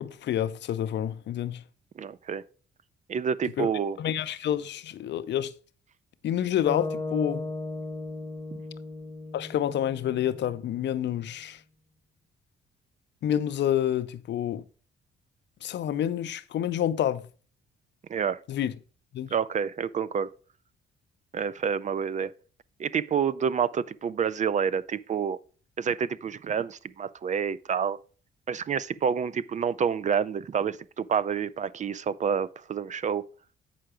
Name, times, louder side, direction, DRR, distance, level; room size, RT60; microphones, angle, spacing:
voice 1, 0.0-1.6 3.6-3.7 4.0-5.5 6.2-7.4 9.3-11.6 13.2-14.6 15.6-17.3 18.5-18.7 19.1-19.3, left 10 dB, 65° left, 0.6 m, -28 dB
voice 2, 2.0-2.4 3.1-4.0 18.1-18.4 19.3-20.3 21.3-22.3 22.8-25.4 25.8-28.0 28.5-33.3, right 7 dB, 40° right, 0.4 m, -28 dB
sound 1, 6.7-10.9, left 2 dB, 15° left, 1.1 m, -36 dB
7.8 x 5.7 x 4.9 m
cardioid pair, 90°, 20 cm